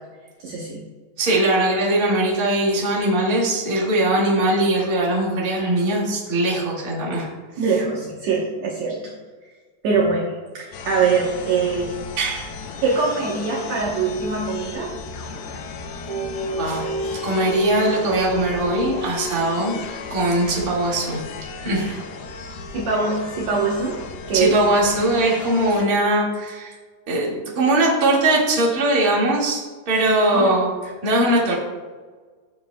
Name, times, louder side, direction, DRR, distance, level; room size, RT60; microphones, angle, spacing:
voice 1, 0.4-0.8 7.6-9.1 9.8-11.9 12.8-14.9 21.8-22.0 22.7-24.0 24.3-24.5 30.3-30.5, right 4 dB, 85° right, -4 dB, 1.5 m, -23 dB
voice 2, 1.2-7.3 12.2-12.5 16.6-19.8 20.1-21.2 21.6-21.9 24.3-26.7 27.1-30.7 31.0-31.5, right 1 dB, 40° right, -5 dB, 1.3 m, -20 dB
sound 1, 10.7-25.8, left 4 dB, 80° left, 2.7 m, -35 dB
sound 2, 16.1-20.1, equal, 65° right, 3.4 m, -29 dB
14.0 x 7.0 x 2.2 m, 1.4 s
omnidirectional pair, 4.7 m